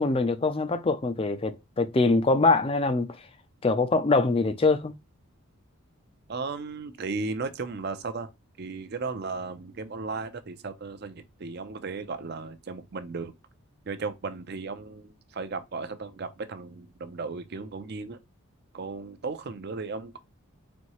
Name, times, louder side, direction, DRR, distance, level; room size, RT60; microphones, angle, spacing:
voice 1, 0.0-3.2 3.6-4.9, left 3 dB, 25° left, 0.4 m, -23 dB
voice 2, 6.3-8.3 8.6-13.3 13.9-18.2 18.7-20.2, right 4 dB, 45° right, 0.5 m, -35 dB
4.3 x 2.7 x 3.0 m
head